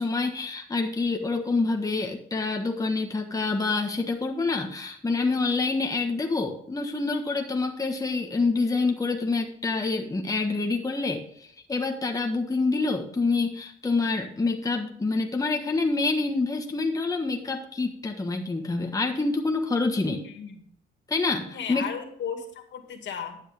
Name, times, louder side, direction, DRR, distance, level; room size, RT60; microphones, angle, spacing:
voice 1, 0.0-20.2 21.1-21.8, left 3 dB, 15° left, 3 dB, 1.4 m, -27 dB
voice 2, 20.2-20.6 21.5-23.4, left 7 dB, 65° left, 5 dB, 2.2 m, -35 dB
11.5 x 8.1 x 3.5 m, 0.66 s
cardioid pair, 90°, 20 cm